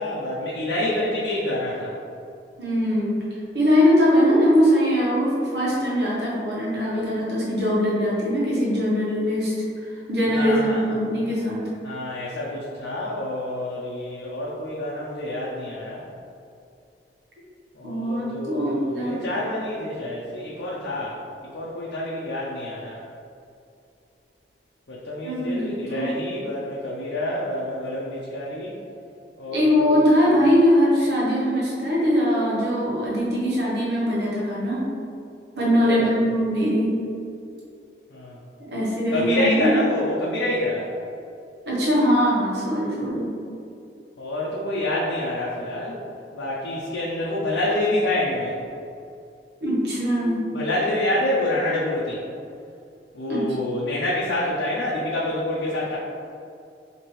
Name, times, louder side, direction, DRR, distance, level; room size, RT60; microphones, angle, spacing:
voice 1, 0.0-2.0 10.3-11.0 11.8-16.0 17.7-21.2 21.5-23.0 24.9-28.7 29.4-30.2 35.8-36.1 38.1-38.4 39.1-40.9 44.2-46.0 46.3-48.5 50.5-52.2 53.1-56.0, left 1 dB, 90° left, -6 dB, 0.6 m, -27 dB
voice 2, 2.6-3.2 3.5-9.5 9.8-11.7 17.8-19.2 25.2-26.1 29.5-34.9 35.5-37.0 38.7-39.8 41.6-43.3 49.6-50.5 53.3-53.5, equal, 70° right, -6 dB, 1.2 m, -21 dB
4.4 x 2.9 x 3.1 m, 2.5 s
head